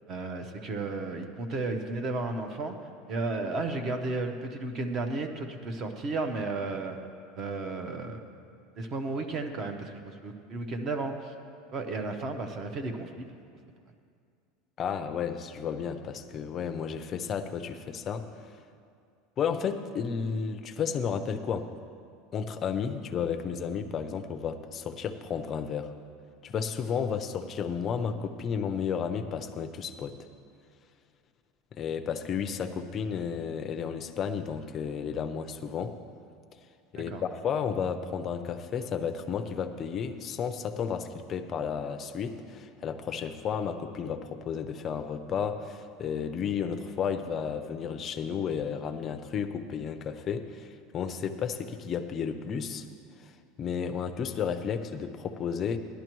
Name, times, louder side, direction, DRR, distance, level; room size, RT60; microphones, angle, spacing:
voice 1, 0.1-2.8 3.1-7.0 7.4-8.2 8.8-11.3 11.7-13.3 37.1-37.2, right 3 dB, 30° right, 6 dB, 0.8 m, -33 dB
voice 2, 14.8-18.3 19.4-21.7 22.3-25.9 26.4-30.2 31.7-36.0 36.9-52.9 53.2-53.3 53.6-55.8, left 7 dB, 25° left, 8 dB, 0.5 m, -32 dB
17.0 x 11.5 x 3.0 m, 2.3 s
supercardioid pair, 170°, 0 cm